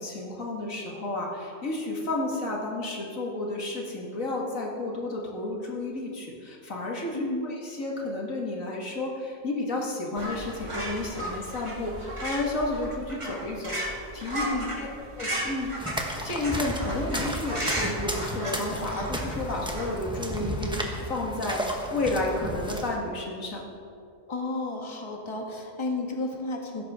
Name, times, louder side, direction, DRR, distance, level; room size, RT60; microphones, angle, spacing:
voice 1, 0.0-14.5 14.8-14.9 15.2-15.7 16.0-23.7, left 2 dB, 85° left, -1 dB, 2.3 m, -31 dB
voice 2, 7.1-7.5 14.4-14.7 24.3-26.8, left 2 dB, 20° left, 1 dB, 1.4 m, -32 dB
sound 1, 10.1-19.9, right 1 dB, 20° right, 2.2 m, -35 dB
sound 2, 15.8-23.0, equal, 5° right, 1.2 m, -33 dB
16.0 x 13.0 x 3.7 m, 2.4 s
omnidirectional pair, 1.4 m